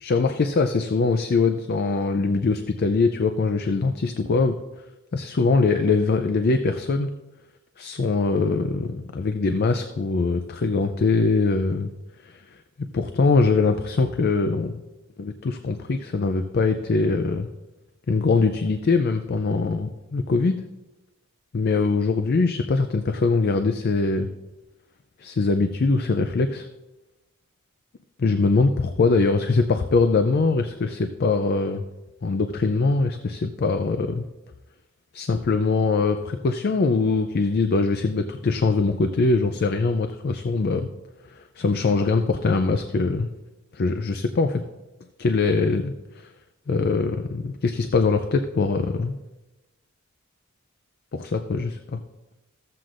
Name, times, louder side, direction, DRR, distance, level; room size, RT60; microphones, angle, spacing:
voice 1, 0.0-4.6 5.1-7.1 7.8-11.9 12.2-12.4 12.9-14.8 15.2-17.5 18.1-20.6 21.5-24.3 25.2-26.7 28.2-31.8 32.2-34.3 35.1-40.9 41.3-43.3 43.7-44.6 45.2-46.3 46.7-49.2 51.1-52.0, left 3 dB, 50° left, 8 dB, 0.4 m, -22 dB
15.0 x 7.6 x 2.5 m, 1.1 s
head